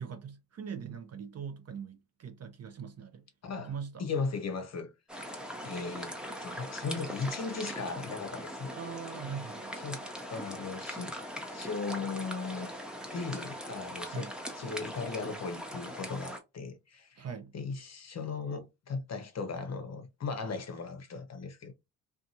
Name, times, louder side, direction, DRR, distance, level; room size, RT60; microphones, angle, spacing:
voice 1, 0.0-3.3 3.6-4.1 8.8-9.7 14.1-14.3 17.2-17.5, right 7 dB, 40° right, 0.6 m, -41 dB
voice 2, 3.4-3.7 4.0-4.9 5.6-6.2 6.4-8.8 9.8-10.0 10.3-11.1 11.5-12.7 13.1-14.3 14.5-17.3 17.5-21.7, left 4 dB, 40° left, 0.7 m, -37 dB
sound 1, 5.1-16.4, equal, ahead, 0.8 m, -41 dB
2.5 x 2.4 x 2.7 m
hypercardioid pair, 45°, 41 cm